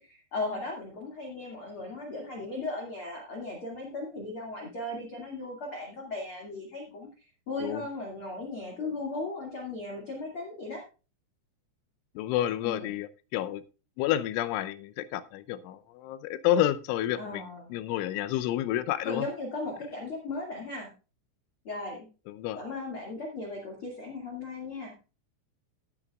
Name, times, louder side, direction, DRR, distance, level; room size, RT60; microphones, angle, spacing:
voice 1, 0.0-10.8 12.6-13.0 17.2-17.8 19.0-20.9 21.6-22.1 22.6-24.9, left 2 dB, 45° left, -1 dB, 1.8 m, -37 dB
voice 2, 12.2-13.6 14.0-17.4 17.7-19.2 22.4-22.6, left 12 dB, 80° left, 13 dB, 3.0 m, -29 dB
16.5 x 8.8 x 2.4 m, 0.32 s
omnidirectional pair, 5.8 m